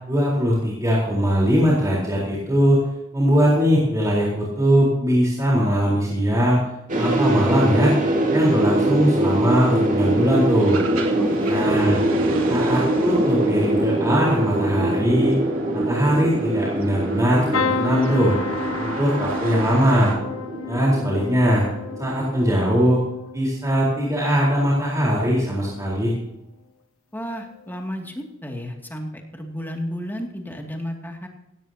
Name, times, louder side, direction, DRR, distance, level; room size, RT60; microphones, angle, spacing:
voice 1, 0.1-2.8 3.1-6.6 7.0-7.9 8.3-10.8 11.5-12.0 12.5-15.4 15.7-18.4 18.8-20.1 20.7-21.7 22.0-23.0 23.3-26.1, equal, 15° right, -5 dB, 4.1 m, -20 dB
sound 1, 6.9-23.0, right 1 dB, 40° right, 2.4 m, -24 dB
sound 2, 9.4-20.1, right 3 dB, 75° right, 3.0 m, -36 dB
voice 2, 11.2-11.7 27.1-31.3, equal, 10° left, 1 dB, 2.4 m, -32 dB
sound 3, 17.5-25.4 25.8-26.4 27.6-27.8 28.0-28.1, left 4 dB, 90° left, 1.5 m, -32 dB
17.0 x 16.5 x 2.9 m, 0.88 s
head